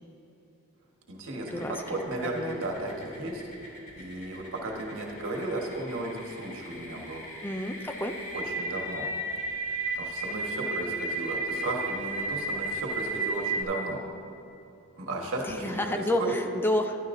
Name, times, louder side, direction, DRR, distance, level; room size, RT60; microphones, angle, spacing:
voice 1, 1.1-7.2 8.3-9.1 9.9-14.0 15.0-16.4, right 2 dB, 60° right, 0 dB, 1.5 m, -35 dB
sound 1, 1.5-13.6, right 2 dB, 35° left, 2.0 m, -34 dB
voice 2, 7.4-8.1 15.6-17.0, left 1 dB, 10° left, 6 dB, 0.4 m, -29 dB
13.5 x 11.0 x 2.7 m, 2.8 s
head